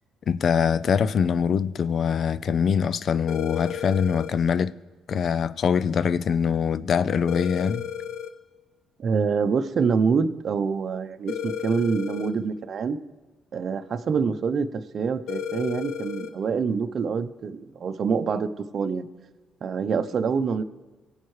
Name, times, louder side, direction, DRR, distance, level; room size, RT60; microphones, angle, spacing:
voice 1, 0.3-4.7 5.1-7.9, left 7 dB, 55° left, 0.4 m, -23 dB
sound 1, 3.3-4.3 7.3-8.3 11.3-12.3 15.3-16.3, left 9 dB, 75° left, 0.8 m, -32 dB
voice 2, 9.0-13.0 13.5-19.1 19.6-20.6, right 5 dB, 50° right, 0.7 m, -26 dB
23.5 x 8.2 x 3.2 m
cardioid pair, 85°, 0 cm